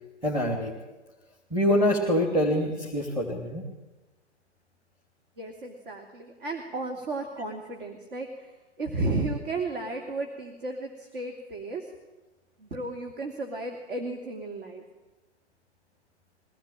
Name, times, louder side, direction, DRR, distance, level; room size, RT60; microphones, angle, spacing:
voice 1, 0.2-0.7 1.5-3.6, equal, 10° right, -1 dB, 3.0 m, -25 dB
voice 2, 5.4-11.9 12.6-14.8, right 2 dB, 50° right, 2 dB, 3.0 m, -34 dB
23.0 x 17.5 x 9.0 m, 1.2 s
figure-of-eight pair, 115°, 35 cm